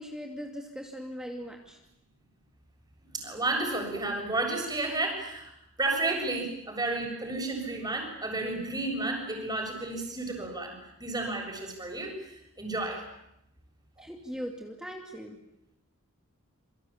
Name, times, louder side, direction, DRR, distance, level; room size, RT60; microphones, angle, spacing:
voice 1, 0.0-1.8 14.0-15.4, equal, 5° right, 2 dB, 2.5 m, -39 dB
voice 2, 3.1-5.5 5.8-12.2 12.6-13.0 14.0-14.1, right 2 dB, 20° right, 2 dB, 7.0 m, -32 dB
27.5 x 24.0 x 8.8 m, 0.81 s
head